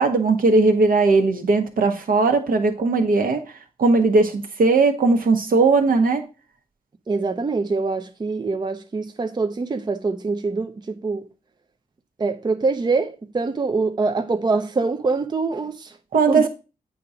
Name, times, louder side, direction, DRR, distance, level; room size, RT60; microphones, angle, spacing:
voice 1, 0.0-3.4 3.8-6.2 16.1-16.5, right 3 dB, 75° right, 1.1 m, -18 dB
voice 2, 7.1-11.2 12.2-15.9 16.3-16.5, right 4 dB, 30° right, 0.5 m, -24 dB
8.4 x 2.9 x 4.9 m
cardioid pair, 75°, 15 cm